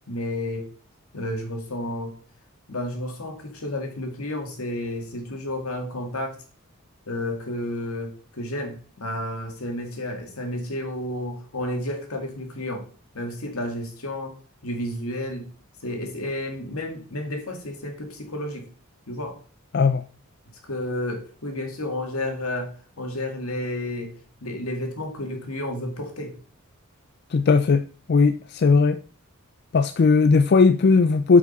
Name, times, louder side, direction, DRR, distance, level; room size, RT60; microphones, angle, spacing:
voice 1, 0.1-0.7 1.1-2.1 2.7-6.3 7.1-12.9 13.1-14.3 14.6-15.5 15.8-18.6 19.1-19.4 20.6-24.1 24.4-26.4, left 1 dB, 75° left, 2.1 m, -31 dB
voice 2, 19.7-20.0 27.3-27.8 28.1-29.0 29.7-31.4, left 4 dB, 50° left, 0.4 m, -17 dB
8.2 x 5.0 x 5.3 m
head